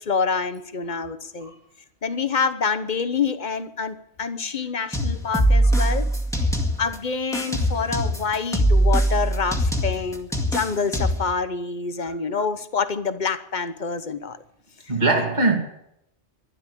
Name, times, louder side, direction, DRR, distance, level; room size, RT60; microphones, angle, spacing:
voice 1, 0.0-1.5 2.0-6.1 6.8-14.4, left 5 dB, 45° left, 1.1 m, -27 dB
sound 1, 4.9-7.0 7.3-11.3, right 1 dB, 5° left, 2.0 m, -21 dB
voice 2, 14.9-15.6, right 2 dB, 40° right, 2.8 m, -22 dB
12.5 x 12.0 x 8.5 m
omnidirectional pair, 1.1 m